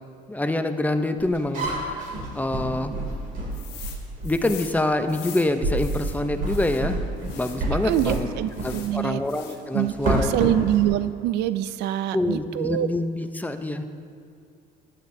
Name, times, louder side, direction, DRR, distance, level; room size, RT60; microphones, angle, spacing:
voice 1, 0.3-2.1 2.3-2.9 4.2-8.3 8.6-10.5 12.1-13.9, left 1 dB, 10° left, 7 dB, 0.6 m, -26 dB
sound 1, 1.2-4.5 5.1-5.2 5.6-8.3 8.6-8.8 9.8-10.9, right 2 dB, 55° right, 2.8 m, -28 dB
sound 2, 3.5-4.0 4.2-6.8 7.2-8.9 9.2-9.8, left 9 dB, 90° left, 1.4 m, -42 dB
voice 2, 7.8-9.2 9.7-12.9, right 13 dB, 80° right, 14 dB, 0.4 m, -25 dB
15.0 x 10.5 x 2.7 m, 2.5 s
cardioid pair, 110°, 17 cm